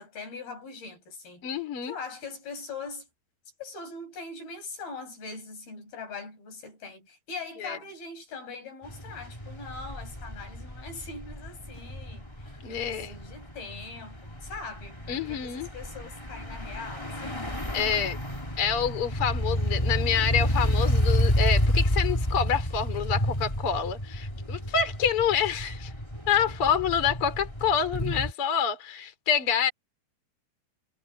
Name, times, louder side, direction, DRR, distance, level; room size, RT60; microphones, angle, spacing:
voice 1, 0.0-1.5 1.8-3.1 3.6-17.4, left 4 dB, 80° left, 10.0 m, -41 dB
voice 2, 1.4-2.0 7.6-7.8 12.6-13.2 15.1-15.7 17.7-18.2 18.6-25.9 26.3-29.7, left 7 dB, 35° left, 4.2 m, -27 dB
sound 1, 8.8-28.3, equal, 10° left, 2.5 m, -30 dB
omnidirectional pair, 4.3 m